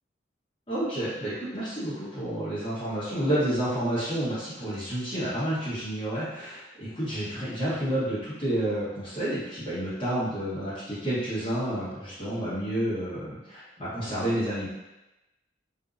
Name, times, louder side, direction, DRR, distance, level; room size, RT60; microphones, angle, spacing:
voice 1, 0.7-14.7, right 1 dB, 30° left, -11 dB, 1.0 m, -30 dB
2.5 x 2.2 x 2.5 m, 1.0 s
head